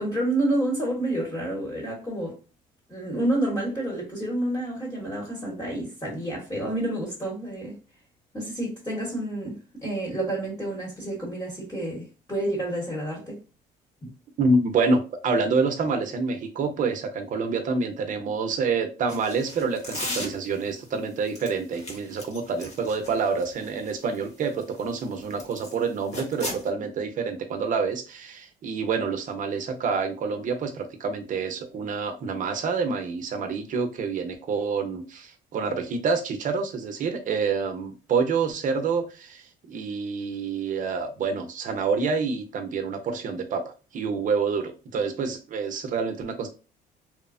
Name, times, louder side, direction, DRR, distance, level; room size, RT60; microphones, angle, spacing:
voice 1, 0.0-2.4 2.9-7.7 8.3-13.4 14.0-14.1, right 1 dB, 15° left, 1.0 m, -29 dB
voice 2, 14.4-46.5, right 4 dB, 50° right, 0.6 m, -27 dB
sound 1, 19.1-20.7 21.3-25.7 26.1-26.7, left 1 dB, 40° left, 1.0 m, -36 dB
3.1 x 2.0 x 2.5 m
cardioid pair, 110°, 17 cm